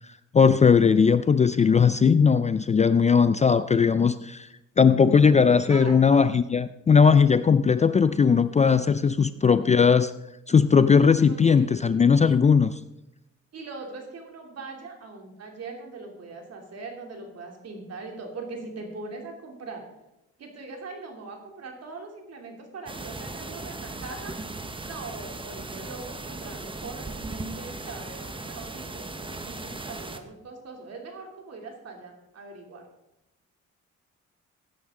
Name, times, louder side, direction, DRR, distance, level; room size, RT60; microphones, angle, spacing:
voice 1, 0.3-4.5 4.8-10.1 10.5-12.8, left 6 dB, 25° left, 13 dB, 0.4 m, -19 dB
voice 2, 11.3-12.3 13.5-19.8 20.4-24.4 24.8-32.8, right 3 dB, 55° right, 2 dB, 3.0 m, -41 dB
sound 1, 22.9-30.2, right 2 dB, 15° right, 1.0 m, -37 dB
15.0 x 9.8 x 3.7 m, 0.89 s
cardioid pair, 90°, 30 cm